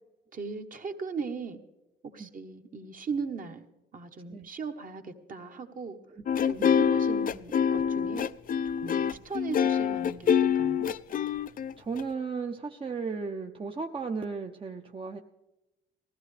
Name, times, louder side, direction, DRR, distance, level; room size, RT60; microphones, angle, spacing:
voice 1, 0.3-1.6 2.0-3.6 3.9-6.0 6.5-8.3 8.8-10.9, right 5 dB, 45° right, 1.3 m, -38 dB
sound 1, 6.3-12.0, left 8 dB, 45° left, 0.4 m, -25 dB
voice 2, 11.8-15.2, right 4 dB, 25° right, 0.7 m, -35 dB
20.0 x 15.0 x 3.3 m
cardioid pair, 90°, 20 cm